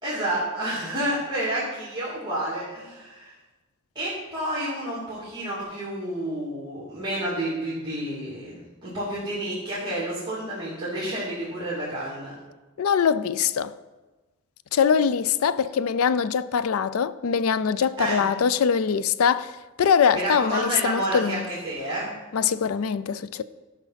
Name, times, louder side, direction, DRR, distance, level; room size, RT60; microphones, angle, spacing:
voice 1, 0.0-3.3 3.9-12.3 18.0-18.2 20.1-22.1, right 1 dB, 20° right, 2.6 m, -30 dB
voice 2, 12.8-13.7 14.7-21.5 22.3-23.4, left 7 dB, 75° left, 0.4 m, -23 dB
12.5 x 5.8 x 5.7 m
head